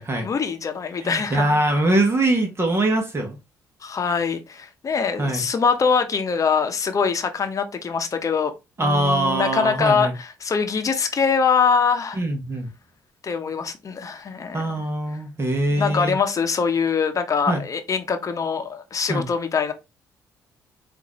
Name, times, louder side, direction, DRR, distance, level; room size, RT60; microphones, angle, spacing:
voice 1, 0.2-1.5 3.8-8.5 8.8-12.2 13.2-14.8 15.7-19.7, left 5 dB, 45° left, 0.8 m, -23 dB
voice 2, 1.0-3.4 5.2-5.5 8.8-10.1 12.2-12.7 14.5-16.2 17.5-17.6 19.1-19.3, right 1 dB, 30° right, 1.2 m, -22 dB
3.8 x 2.6 x 3.0 m
supercardioid pair, 65°, 8 cm